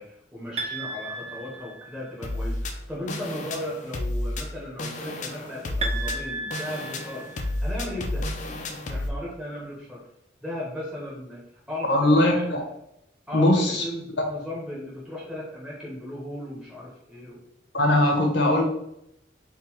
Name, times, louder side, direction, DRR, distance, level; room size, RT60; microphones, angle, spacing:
voice 1, 0.0-8.3 8.9-10.0 10.4-12.5 13.3-17.4, left 1 dB, 5° right, -6 dB, 0.8 m, -36 dB
sound 1, 0.6-2.2 5.8-7.8, right 3 dB, 35° right, 0.5 m, -34 dB
sound 2, 2.2-9.1, left 1 dB, 40° left, 0.5 m, -31 dB
voice 2, 11.9-12.6 13.3-13.8 17.7-18.6, left 1 dB, 65° left, 1 dB, 1.0 m, -20 dB
3.7 x 2.2 x 4.4 m, 0.80 s
head